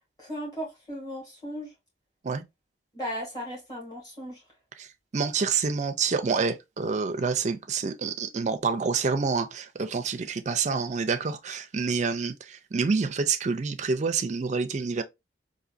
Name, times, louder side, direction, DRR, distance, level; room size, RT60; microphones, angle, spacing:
voice 1, 0.2-1.7 2.9-4.4, equal, 20° left, 2.1 m, -36 dB
voice 2, 4.8-15.0, right 5 dB, 40° right, 0.4 m, -28 dB
4.0 x 2.7 x 2.5 m
head